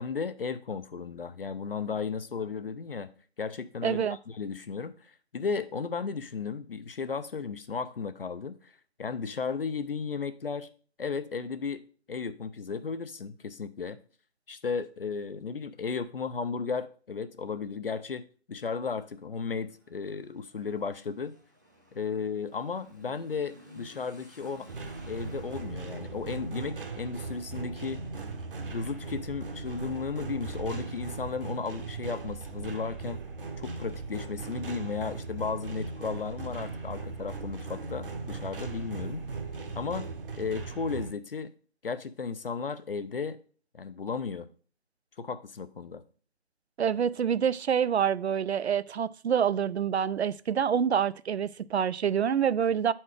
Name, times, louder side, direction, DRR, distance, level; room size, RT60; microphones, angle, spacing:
voice 1, 0.0-3.1 3.4-8.7 9.0-10.7 11.0-14.0 14.5-21.3 21.9-24.7 25.1-28.0 28.7-33.2 33.6-39.2 39.8-40.1 40.4-41.5 41.8-43.4 43.7-44.5 45.2-46.0, left 5 dB, 60° left, 0.6 m, -34 dB
voice 2, 3.8-4.2 46.8-52.9, right 8 dB, 75° right, 0.5 m, -27 dB
Motorcycle / Accelerating revving vroom, 19.0-31.2, equal, 20° right, 0.5 m, -56 dB
sound 1, 24.7-41.1, right 3 dB, 55° right, 0.9 m, -38 dB
7.5 x 4.3 x 4.8 m
figure-of-eight pair, 160°, 33 cm